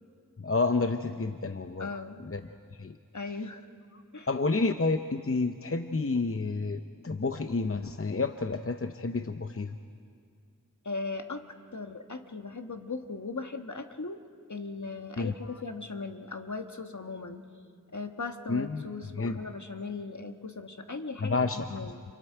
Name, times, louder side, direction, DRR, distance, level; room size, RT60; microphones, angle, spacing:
voice 1, 0.4-1.9 2.2-2.4 2.8-3.0 4.3-9.8 15.2-15.3 18.5-18.9 19.1-19.4 21.2-21.8, left 3 dB, 40° left, 7 dB, 0.7 m, -29 dB
voice 2, 1.8-2.3 3.1-3.7 4.1-4.3 10.8-17.4 17.9-22.0, left 3 dB, 60° left, 6 dB, 1.3 m, -38 dB
29.5 x 29.5 x 4.6 m, 2.2 s
wide cardioid pair, 45°, 33 cm